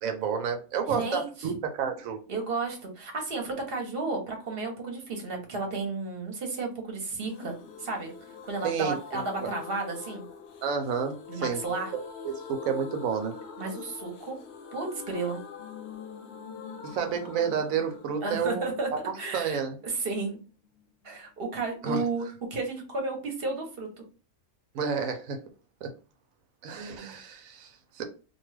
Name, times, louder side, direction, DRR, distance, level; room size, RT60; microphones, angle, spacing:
voice 1, 0.0-2.2 8.6-9.5 10.6-11.6 12.2-13.3 16.8-18.7 19.3-19.8 21.8-22.0 24.7-25.4 25.8-25.9 26.6-28.0, right 6 dB, 75° right, 6 dB, 1.0 m, -30 dB
voice 2, 0.9-1.5 2.3-8.1 8.4-10.2 11.3-11.9 13.6-14.4 14.7-15.4 18.2-18.9 19.2-20.4 21.0-24.0, right 3 dB, 50° right, 2 dB, 0.9 m, -33 dB
sound 1, 7.2-20.9 21.1-21.2 21.5-21.6, left 6 dB, 65° left, 0.7 m, -44 dB
2.5 x 2.3 x 3.2 m, 0.34 s
omnidirectional pair, 1.4 m